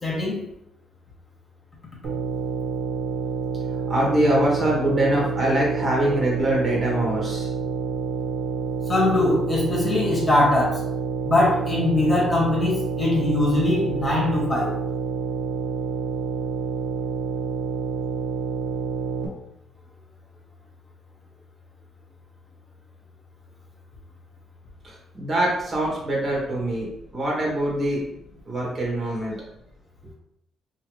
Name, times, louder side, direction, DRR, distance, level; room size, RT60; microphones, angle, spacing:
voice 1, 0.0-0.5 8.9-10.8 11.2-14.7, left 2 dB, 25° left, -3 dB, 1.1 m, -21 dB
sound 1, 2.0-19.3, right 5 dB, 85° right, 0.7 m, -28 dB
voice 2, 3.9-7.5 24.8-26.9 27.1-28.0 28.5-29.4, right 1 dB, 40° right, -3 dB, 1.4 m, -23 dB
2.8 x 2.8 x 3.2 m, 0.76 s
cardioid pair, 90°, 0 cm